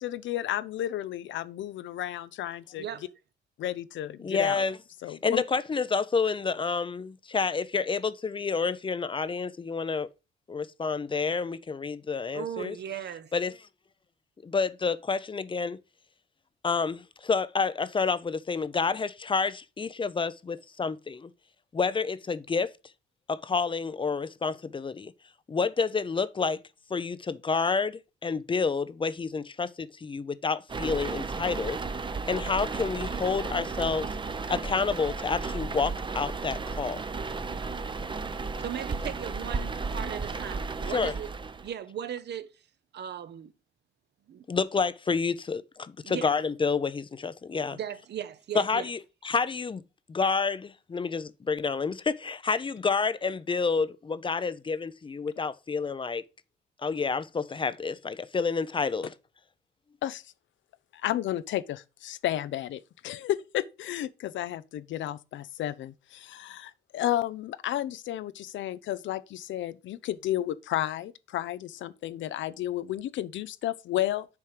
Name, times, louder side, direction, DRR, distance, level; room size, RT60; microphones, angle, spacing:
voice 1, 0.0-2.8 3.6-4.6 5.0-5.4 60.0-60.2 60.9-74.3, left 13 dB, 75° left, 0.6 m, -32 dB
voice 2, 2.8-3.1 12.3-13.3 38.6-41.3 41.6-42.5 42.9-43.5 44.3-44.4 46.0-46.4 47.7-48.8, right 9 dB, 60° right, 0.8 m, -37 dB
voice 3, 4.2-4.8 5.1-10.1 10.5-12.8 13.3-13.5 14.4-15.8 16.6-21.3 21.7-22.7 23.3-25.1 25.5-26.6 26.9-31.8 32.3-34.1 34.5-37.0 40.9-41.1 44.5-47.8 48.5-49.0 49.2-49.8 50.1-56.2 56.8-59.1, left 5 dB, 25° left, 0.5 m, -29 dB
sound 1, 30.7-41.7, right 4 dB, 25° right, 0.7 m, -34 dB
7.0 x 4.4 x 4.8 m
cardioid pair, 90°, 20 cm